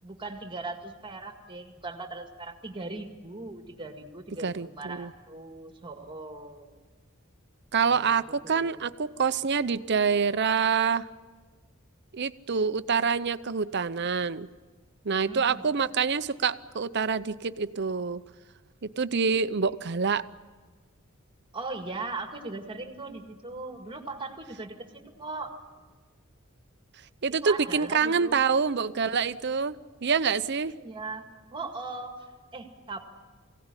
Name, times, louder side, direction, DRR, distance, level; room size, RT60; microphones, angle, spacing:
voice 1, 0.0-6.8 7.8-8.8 15.1-15.7 21.5-25.6 27.4-28.4 30.8-33.0, right 3 dB, 25° right, 4 dB, 2.0 m, -39 dB
voice 2, 4.4-5.1 7.7-11.1 12.1-14.5 15.0-18.2 18.8-20.2 27.2-29.8 30.0-30.7, right 5 dB, 55° right, 13 dB, 0.7 m, -26 dB
23.5 x 17.0 x 9.8 m, 1.4 s
head